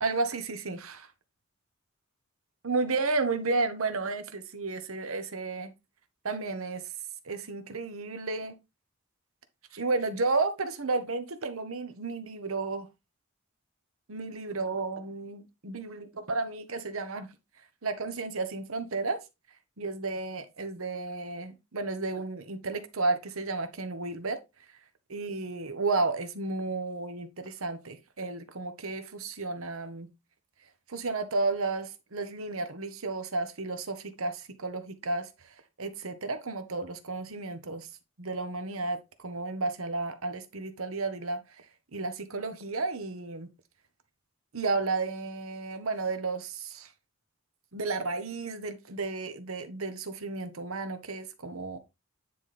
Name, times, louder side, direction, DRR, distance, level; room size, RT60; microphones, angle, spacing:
voice 1, 0.0-1.1 2.6-5.7 6.2-6.9 7.2-8.6 9.7-12.9 14.1-17.3 17.8-19.2 19.8-24.4 25.1-30.1 30.9-35.5 35.8-37.9 38.2-41.6 41.9-43.5 44.5-46.9 47.7-51.8, right 3 dB, 70° right, 1.1 m, -32 dB
9.5 x 4.2 x 3.4 m
head